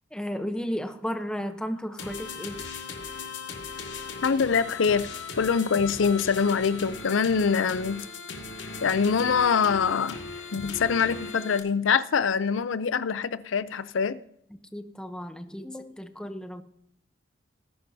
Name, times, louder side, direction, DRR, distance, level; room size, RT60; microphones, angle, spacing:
voice 1, 0.1-2.6 14.7-16.6, equal, 5° left, 0.8 m, -34 dB
sound 1, 2.0-11.6, left 4 dB, 70° left, 2.0 m, -38 dB
voice 2, 4.2-5.1 5.4-8.1 8.8-10.2 10.5-14.2, left 6 dB, 85° left, 0.5 m, -24 dB
19.0 x 10.5 x 2.8 m
head